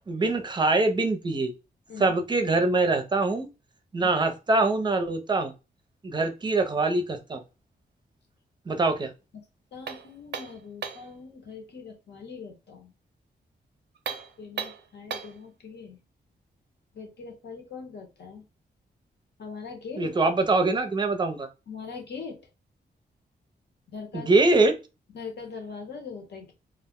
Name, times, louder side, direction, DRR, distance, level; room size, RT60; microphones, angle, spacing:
voice 1, 0.1-1.5 2.0-3.5 3.9-5.5 6.0-7.4 8.7-9.1 20.0-21.5 24.1-24.8, right 2 dB, 25° right, 6 dB, 0.5 m, -23 dB
voice 2, 9.7-12.9 14.4-16.0 16.9-18.4 19.4-20.1 21.7-22.5 23.9-24.3 25.1-26.5, left 5 dB, 80° left, 2 dB, 0.9 m, -41 dB
sound 1, 9.9-11.1 13.9-15.4, right 7 dB, 90° right, 0.5 m, -36 dB
2.4 x 2.1 x 3.5 m, 0.28 s
wide cardioid pair, 155°, 17 cm